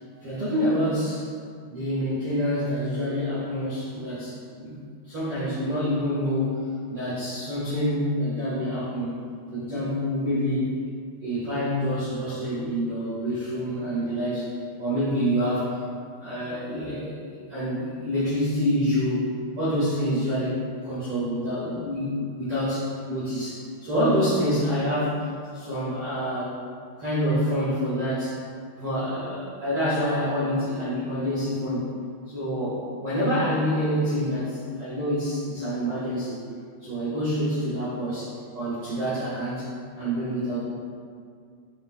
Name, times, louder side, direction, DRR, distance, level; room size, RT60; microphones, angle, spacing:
voice 1, 0.2-1.2 1.7-4.7 5.1-6.6 6.9-9.2 9.5-10.7 11.2-14.5 14.8-15.8 16.2-26.5 27.0-28.3 28.8-31.9 32.2-36.4 36.8-39.7 40.0-40.6, equal, 75° right, -12 dB, 1.3 m, -27 dB
9.6 x 6.3 x 2.4 m, 2.2 s
omnidirectional pair, 5.8 m